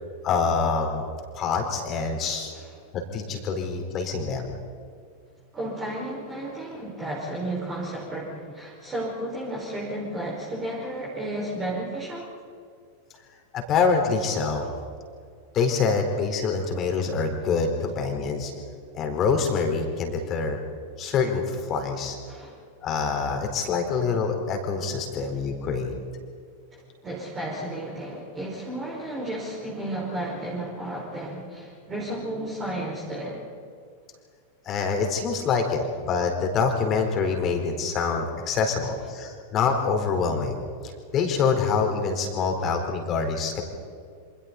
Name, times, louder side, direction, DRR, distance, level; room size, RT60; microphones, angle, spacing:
voice 1, 0.2-1.0 1.3-2.5 2.9-4.5 13.5-14.7 15.5-18.5 18.9-20.6 21.0-22.2 22.8-25.9 34.6-40.6 41.1-43.6, left 5 dB, 30° left, 3 dB, 4.2 m, -25 dB
voice 2, 5.5-12.3 22.3-22.5 27.0-33.4, right 1 dB, 20° right, -3 dB, 5.4 m, -33 dB
28.0 x 26.0 x 4.3 m, 2.2 s
figure-of-eight pair, 90°, 0 cm